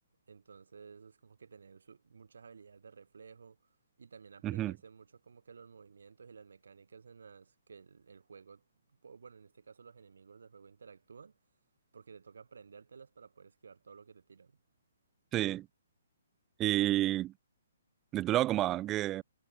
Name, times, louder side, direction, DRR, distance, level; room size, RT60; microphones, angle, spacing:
voice 1, 0.3-11.4 11.9-14.6, right 5 dB, 60° right, 6.9 m, -55 dB
voice 2, 15.3-15.7 16.6-17.3 18.1-19.2, right 14 dB, 20° right, 0.4 m, -30 dB
figure-of-eight pair, 130°, 0 cm